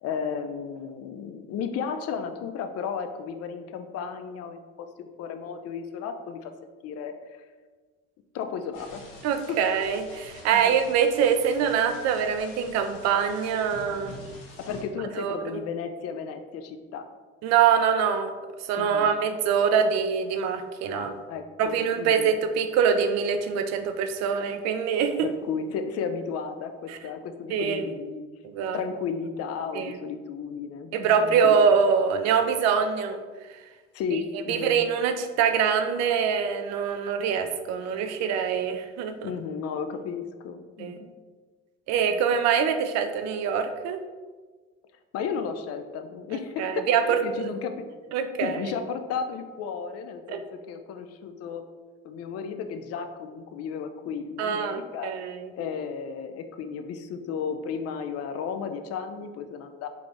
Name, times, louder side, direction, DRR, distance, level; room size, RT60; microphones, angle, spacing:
voice 1, 0.0-7.1 8.3-9.0 10.5-10.8 14.6-17.1 18.8-19.1 20.9-22.3 25.2-28.2 28.7-31.5 33.9-34.7 39.2-41.1 42.1-42.2 45.1-51.6 52.0-59.9, left 6 dB, 55° left, 8 dB, 0.5 m, -34 dB
sound 1, 8.7-14.8, equal, 75° left, 1.2 m, -46 dB
voice 2, 9.2-14.1 15.2-15.6 17.4-18.3 18.6-21.1 21.6-25.3 26.9-27.0 27.5-27.9 28.4-28.8 29.7-29.9 30.9-33.2 34.1-34.2 34.5-39.3 40.8-41.0 41.9-44.0 46.6-47.2 48.1-48.6 50.3-50.4 54.4-55.5, right 7 dB, 65° right, 8 dB, 0.4 m, -24 dB
3.5 x 2.5 x 3.2 m, 1.4 s
hypercardioid pair, 70°, 29 cm